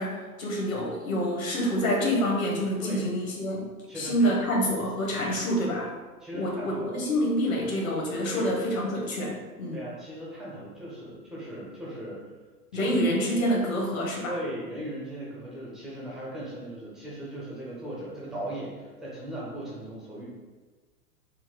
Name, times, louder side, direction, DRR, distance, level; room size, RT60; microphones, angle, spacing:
voice 1, 0.0-3.7 3.9-5.9 6.3-9.8 12.7-14.4, equal, 65° left, -2 dB, 1.3 m, -27 dB
voice 2, 3.9-4.3 6.2-7.0 8.2-8.5 9.7-12.2 12.7-13.0 14.2-20.2, right 1 dB, ahead, -7 dB, 0.4 m, -38 dB
4.3 x 2.0 x 3.9 m, 1.3 s
figure-of-eight pair, 100°, 45 cm